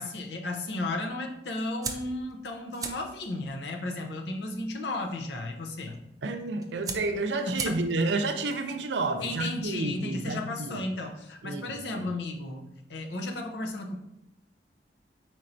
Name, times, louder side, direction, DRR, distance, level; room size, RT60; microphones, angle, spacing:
voice 1, 0.0-6.0 7.5-7.8 9.2-14.0, left 2 dB, 75° left, 3 dB, 0.6 m, -34 dB
sound 1, 1.8-10.3, right 5 dB, 20° right, 0.4 m, -43 dB
voice 2, 6.2-10.8 11.4-12.0, right 3 dB, 80° right, 7 dB, 0.5 m, -30 dB
4.4 x 4.3 x 2.6 m, 0.86 s
head